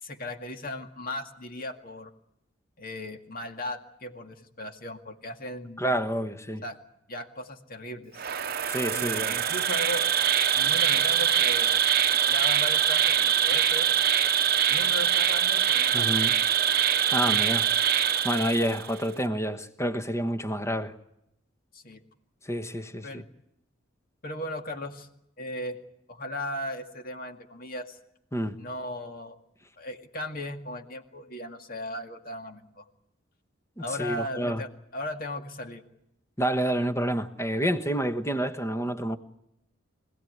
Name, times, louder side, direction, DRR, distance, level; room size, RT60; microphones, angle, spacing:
voice 1, 0.0-2.1 2.8-5.9 6.6-6.8 7.1-8.3 8.9-10.0 10.5-13.9 14.7-16.1 21.7-22.0 23.0-23.3 24.2-25.1 25.4-25.8 26.1-28.0 28.6-29.4 29.8-32.8 33.8-35.8, left 1 dB, 45° left, 2.1 m, -37 dB
voice 2, 5.8-6.6 8.7-9.3 15.9-16.3 17.1-17.7 18.2-20.9 22.4-23.2 28.3-28.6 33.8-34.6 36.4-39.2, equal, 15° left, 1.2 m, -28 dB
Insect, 8.2-18.9, right 9 dB, 50° right, 0.8 m, -24 dB
25.0 x 17.0 x 9.5 m
head